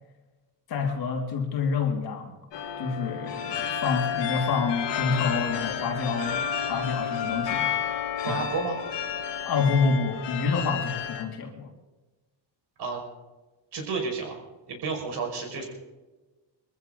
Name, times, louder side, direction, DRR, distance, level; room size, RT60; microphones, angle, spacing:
voice 1, 0.7-2.3 2.8-6.4 6.7-7.7 8.3-8.4 9.4-11.7, left 5 dB, 55° left, 2 dB, 2.9 m, -27 dB
sound 1, 2.5-11.2, left 8 dB, 70° left, 2.7 m, -31 dB
voice 2, 8.2-8.8 12.8-13.0 13.7-14.3 14.7-15.6, right 4 dB, 60° right, 2 dB, 5.6 m, -31 dB
22.5 x 15.0 x 3.9 m, 1.2 s
cardioid pair, 155°, 45 cm